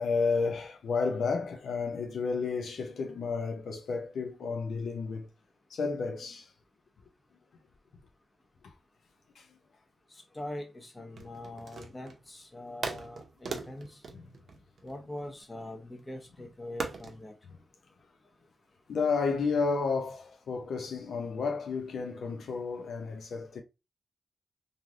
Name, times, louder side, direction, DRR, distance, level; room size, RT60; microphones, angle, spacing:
voice 1, 0.0-5.3 5.7-6.4 9.4-9.5 14.1-14.3 18.9-23.6, left 4 dB, 85° left, 0.5 m, -31 dB
voice 2, 10.3-14.0 14.8-17.3, left 1 dB, 25° left, 0.9 m, -42 dB
sound 1, 11.1-12.3 12.8-15.3 16.8-17.2, right 4 dB, 70° right, 0.6 m, -39 dB
3.1 x 2.6 x 2.4 m
cardioid pair, 65°, 0 cm